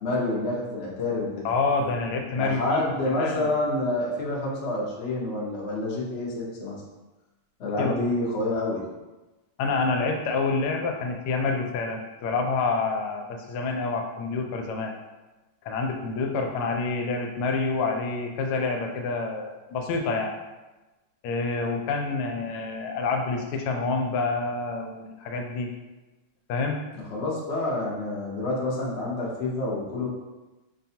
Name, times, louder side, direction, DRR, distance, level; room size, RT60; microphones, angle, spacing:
voice 1, 0.0-1.5 2.4-6.8 7.6-8.8 26.9-30.1, left 2 dB, 55° left, -5 dB, 0.7 m, -28 dB
voice 2, 1.4-3.4 7.8-8.0 9.6-14.9 15.6-20.3 21.2-25.7 26.5-26.8, left 4 dB, 80° left, 3 dB, 1.4 m, -27 dB
5.7 x 2.3 x 2.7 m, 1.1 s
omnidirectional pair, 2.4 m